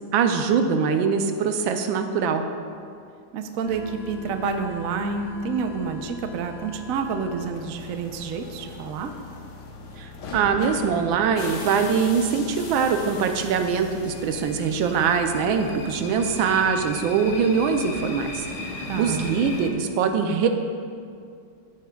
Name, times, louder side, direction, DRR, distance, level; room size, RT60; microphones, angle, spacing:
voice 1, 0.1-2.4 10.0-18.4 18.8-20.5, right 6 dB, 85° right, 6 dB, 1.4 m, -23 dB
voice 2, 3.3-9.1 18.9-19.3, right 5 dB, 65° right, 6 dB, 0.8 m, -29 dB
sound 1, 3.6-19.7, left 3 dB, 65° left, 1.5 m, -38 dB
16.0 x 8.3 x 2.3 m, 2.4 s
omnidirectional pair, 2.1 m